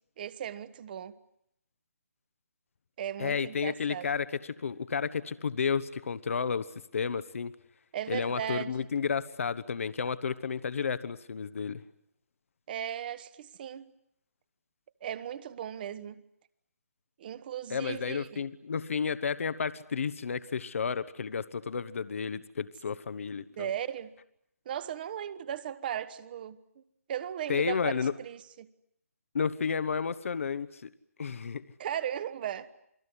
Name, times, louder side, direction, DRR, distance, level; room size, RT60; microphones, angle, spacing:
voice 1, 0.2-1.1 3.0-4.1 7.9-8.9 12.7-13.9 15.0-16.2 17.2-18.4 23.6-24.1 24.6-26.8 27.1-27.9 28.2-28.7 31.8-32.7, right 10 dB, 40° right, 1.5 m, -37 dB
voice 2, 3.2-7.5 8.1-11.8 17.7-23.7 27.5-28.1 29.3-30.9 31.2-31.6, left 6 dB, 60° left, 1.2 m, -32 dB
28.5 x 20.5 x 9.8 m
figure-of-eight pair, 145°, 8 cm